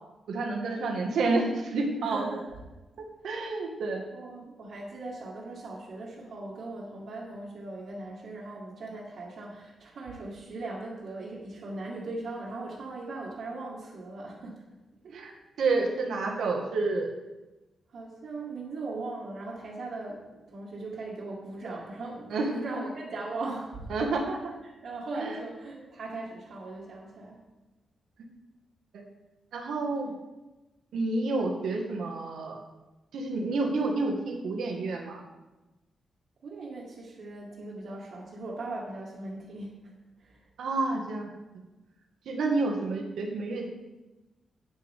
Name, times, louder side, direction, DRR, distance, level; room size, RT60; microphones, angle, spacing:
voice 1, 0.3-2.3 3.2-4.0 15.1-15.3 15.6-17.1 22.3-22.8 23.9-24.4 25.1-25.4 28.9-29.0 29.5-30.1 30.9-32.6 33.1-35.2 40.6-41.3 42.3-43.7, right 3 dB, 80° right, 1 dB, 1.9 m, -29 dB
voice 2, 2.0-2.5 4.1-14.6 15.0-15.4 17.9-23.9 24.6-27.4 36.4-39.9 40.2-40.5, right 2 dB, 65° right, -7 dB, 2.2 m, -39 dB
10.5 x 9.1 x 3.7 m, 1.1 s
wide cardioid pair, 145°, 0 cm